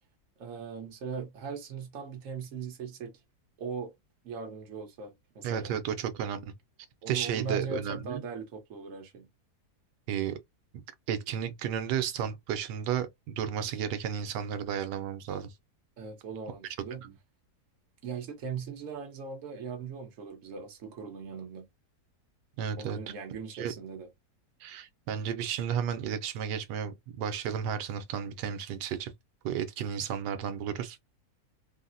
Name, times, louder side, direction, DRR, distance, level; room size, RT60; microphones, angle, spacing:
voice 1, 0.4-3.1 3.6-3.9 4.2-5.7 7.0-9.3 16.0-17.0 18.0-21.7 22.8-24.1, right 5 dB, 55° right, 1.2 m, -39 dB
voice 2, 5.4-6.5 7.1-8.2 10.1-10.4 10.7-10.8 11.1-15.5 17.0-17.1 22.6-23.0 23.5-23.7 24.6-29.1 29.4-31.0, right 8 dB, 90° right, 1.2 m, -33 dB
3.8 x 2.0 x 2.6 m
omnidirectional pair, 1.8 m